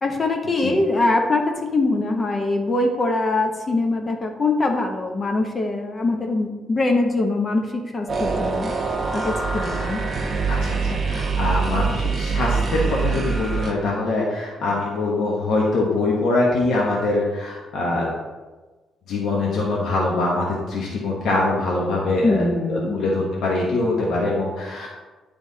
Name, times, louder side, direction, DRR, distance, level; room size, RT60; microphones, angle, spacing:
voice 1, 0.0-8.7 9.1-10.1 22.2-23.0, left 2 dB, 30° left, 3 dB, 1.0 m, -23 dB
sound 1, 8.1-13.7, right 4 dB, 35° right, 1.0 m, -24 dB
voice 2, 10.5-18.1 19.1-24.9, left 2 dB, 70° left, -3 dB, 1.3 m, -23 dB
9.6 x 3.5 x 4.0 m, 1.3 s
cardioid pair, 90°, 0 cm